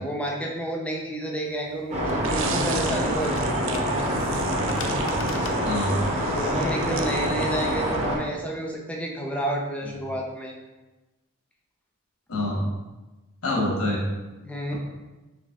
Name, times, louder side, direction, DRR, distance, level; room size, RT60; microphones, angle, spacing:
voice 1, 0.0-3.4 3.7-3.8 6.3-10.5 14.4-14.7, right 1 dB, 5° left, -1 dB, 0.5 m, -30 dB
sound 1, 1.5-6.8, left 4 dB, 60° left, 0.4 m, -42 dB
sound 2, 1.9-8.2, equal, 30° right, 0.8 m, -26 dB
sound 3, 2.2-8.1, right 5 dB, 60° right, 0.4 m, -37 dB
voice 2, 5.6-6.0 12.3-12.7 13.4-14.1, left 1 dB, 75° left, -2 dB, 1.1 m, -25 dB
4.0 x 3.1 x 3.6 m, 1.1 s
head